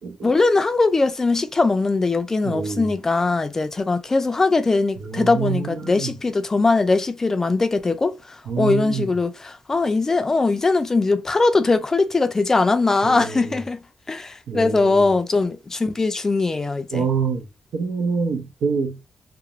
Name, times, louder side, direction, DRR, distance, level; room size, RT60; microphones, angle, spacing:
voice 1, 0.2-17.1, left 3 dB, 20° left, 0.3 m, -21 dB
voice 2, 2.4-2.9 5.0-6.1 8.5-9.1 13.0-13.6 14.5-15.1 16.9-17.5 17.7-19.0, right 6 dB, 85° right, 0.6 m, -26 dB
2.4 x 2.0 x 2.8 m
wide cardioid pair, 140°, 2 cm